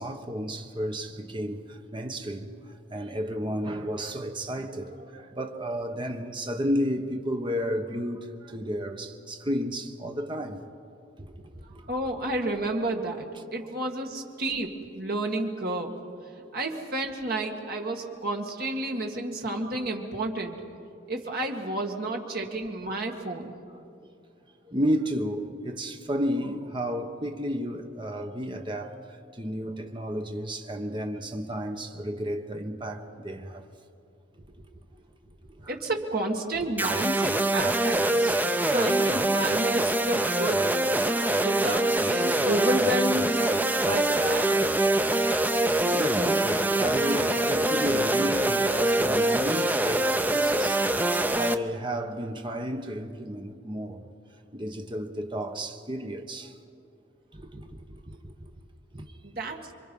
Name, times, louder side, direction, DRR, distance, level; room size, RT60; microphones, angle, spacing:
voice 1, 0.0-2.5 2.9-10.6 11.5-11.9 12.2-12.3 16.4-16.5 24.7-28.9 29.4-33.6 35.6-35.7 38.3-38.4 43.8-44.0 45.9-50.8 51.3-54.1 54.5-56.5 57.3-58.2 58.9-59.0, equal, 25° right, 1.2 m, -32 dB
voice 2, 11.9-16.0 16.5-20.6 21.1-23.6 35.7-38.3 38.7-40.7 41.4-43.4 43.8-44.5 59.2-59.6, right 1 dB, 50° right, 2.1 m, -31 dB
sound 1, 36.8-51.5, right 1 dB, 10° right, 0.5 m, -24 dB
27.5 x 24.0 x 5.5 m
head